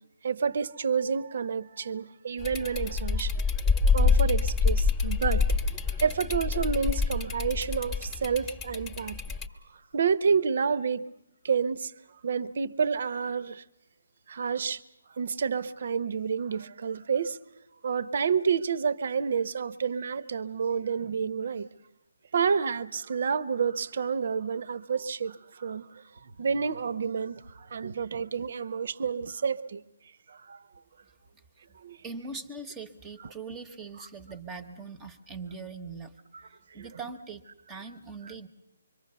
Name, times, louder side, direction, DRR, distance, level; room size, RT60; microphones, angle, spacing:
voice 1, 0.2-3.3 3.9-5.5 6.0-9.2 9.9-11.1 11.4-11.9 12.2-13.6 14.3-14.8 15.1-17.4 17.8-21.7 22.3-29.8 30.3-30.7 31.8-32.0 36.8-36.9, right 6 dB, 50° right, 0.9 m, -29 dB
sound 1, 2.4-9.5, left 5 dB, 10° left, 1.1 m, -26 dB
voice 2, 32.0-36.2 36.7-37.4 37.7-38.5, right 4 dB, 10° right, 1.0 m, -41 dB
25.5 x 23.5 x 6.8 m
hypercardioid pair, 165°, 0 cm